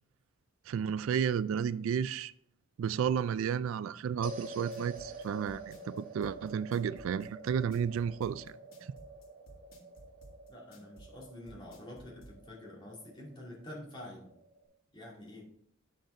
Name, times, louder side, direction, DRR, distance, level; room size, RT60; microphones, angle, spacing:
voice 1, 0.7-2.3 2.8-8.5, right 7 dB, 75° right, 0.3 m, -32 dB
sound 1, 4.2-14.7, right 2 dB, 45° right, 1.7 m, -48 dB
sound 2, 4.5-12.3, right 1 dB, 90° left, 1.9 m, -54 dB
voice 2, 10.5-14.3 14.9-15.5, left 1 dB, 25° left, 2.3 m, -47 dB
8.2 x 6.5 x 3.8 m
head